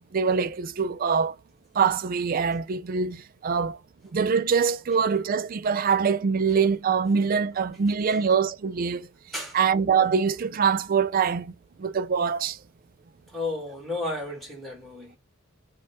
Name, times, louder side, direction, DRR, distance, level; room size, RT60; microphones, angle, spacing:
voice 1, 0.1-1.3 1.7-3.8 4.1-9.1 9.5-12.6, right 6 dB, 45° right, 0.3 m, -24 dB
voice 2, 13.3-15.2, left 2 dB, ahead, 1.8 m, -32 dB
5.1 x 2.3 x 3.5 m
head